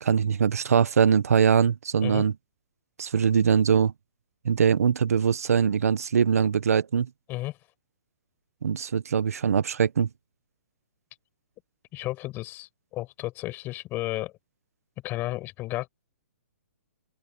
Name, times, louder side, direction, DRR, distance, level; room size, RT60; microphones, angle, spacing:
voice 1, 0.0-2.3 3.0-3.9 4.4-7.1 8.6-10.1, right 7 dB, 75° right, 1.5 m, -22 dB
voice 2, 11.9-14.3 15.0-15.9, left 17 dB, 25° left, 7.6 m, -33 dB
open air
hypercardioid pair, 145°, 8 cm